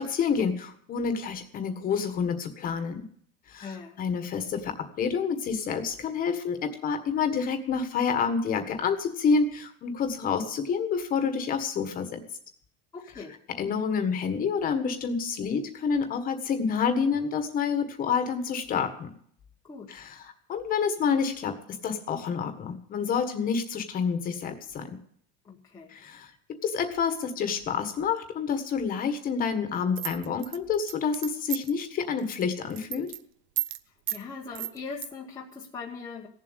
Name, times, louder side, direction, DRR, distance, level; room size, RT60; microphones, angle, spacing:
voice 1, 0.0-3.0 3.5-3.7 4.0-12.2 13.6-19.1 19.9-21.5 21.8-24.9 25.9-26.3 26.6-33.1, left 6 dB, 25° left, 8 dB, 1.6 m, -28 dB
voice 2, 3.6-4.0 12.9-13.4 19.6-20.0 25.4-25.9 34.1-36.3, left 5 dB, 10° left, -3 dB, 1.2 m, -40 dB
sound 1, 30.0-31.8 32.2-32.4 32.7-33.2 33.6-33.8 34.1-34.2 34.5-35.1, right 16 dB, 50° right, 0.6 m, -32 dB
16.5 x 7.5 x 8.1 m, 0.63 s
supercardioid pair, 170°, 32 cm